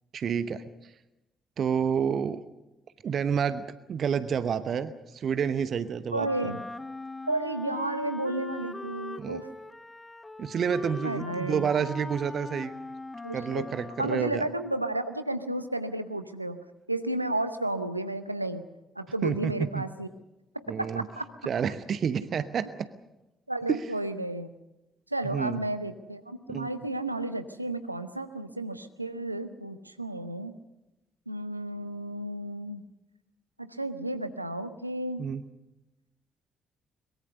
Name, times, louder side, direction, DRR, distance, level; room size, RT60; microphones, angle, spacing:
voice 1, 0.1-0.6 1.6-2.4 3.0-6.3 9.2-9.4 10.4-12.7 13.3-14.5 19.2-19.8 20.7-21.0 21.5-22.9 23.7-23.8 25.2-25.6 26.5-26.7 35.2-35.4, right 7 dB, 50° right, 13 dB, 0.9 m, -29 dB
voice 2, 6.1-6.6 7.3-9.5 11.0-11.7 13.2-13.6 14.0-16.6 16.9-18.6 19.0-20.1 20.8-21.3 23.5-24.5 25.1-30.5 31.3-32.8 33.6-35.2, right 1 dB, 90° right, 11 dB, 0.8 m, -32 dB
Wind instrument woodwind instrument, 6.2-14.3, left 2 dB, 20° left, 1.1 m, -40 dB
23.0 x 22.0 x 6.8 m, 0.96 s
figure-of-eight pair, 40°, 0 cm